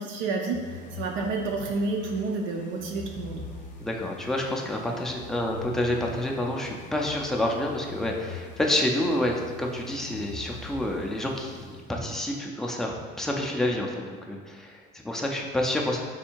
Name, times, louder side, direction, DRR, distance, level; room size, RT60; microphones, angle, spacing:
voice 1, 0.0-3.5, right 3 dB, 65° right, 1 dB, 0.5 m, -30 dB
sound 1, 0.5-12.3, left 2 dB, 35° left, 0.8 m, -43 dB
voice 2, 3.8-16.1, left 1 dB, ahead, -1 dB, 0.4 m, -28 dB
3.5 x 2.7 x 4.4 m, 1.5 s
cardioid pair, 140°, 21 cm